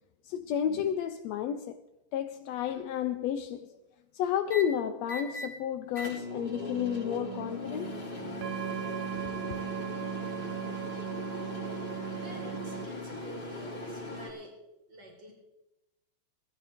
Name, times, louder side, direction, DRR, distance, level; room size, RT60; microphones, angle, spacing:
voice 1, 0.3-1.8 2.1-3.8 4.1-7.9 9.1-9.3, left 9 dB, 80° left, 1.5 m, -31 dB
sound 1, 2.7-3.1 4.5-4.6 5.1-5.5 5.9-14.3, left 2 dB, 15° left, 2.8 m, -39 dB
sound 2, 6.5-12.9, right 13 dB, 85° right, 1.1 m, -38 dB
voice 2, 12.2-14.5 14.9-15.3, right 1 dB, 35° right, 4.7 m, -48 dB
19.0 x 13.0 x 3.5 m
omnidirectional pair, 3.6 m